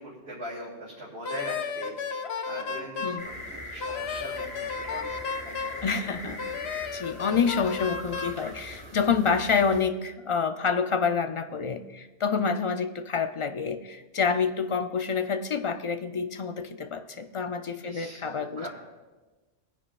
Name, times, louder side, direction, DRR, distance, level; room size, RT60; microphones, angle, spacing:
voice 1, 0.0-1.9 2.5-5.1 5.4-5.8 6.2-6.6 17.8-18.7, right 1 dB, 70° right, -7 dB, 2.9 m, -41 dB
Wind instrument woodwind instrument, 1.2-3.2 3.8-5.8 6.4-8.4, left 6 dB, 70° left, 1.0 m, -33 dB
sound 1, 3.2-9.8, left 1 dB, 25° right, 2.4 m, -42 dB
voice 2, 5.8-6.4 6.9-18.7, left 5 dB, 45° left, 8 dB, 0.4 m, -28 dB
19.0 x 9.9 x 2.4 m, 1.2 s
omnidirectional pair, 1.1 m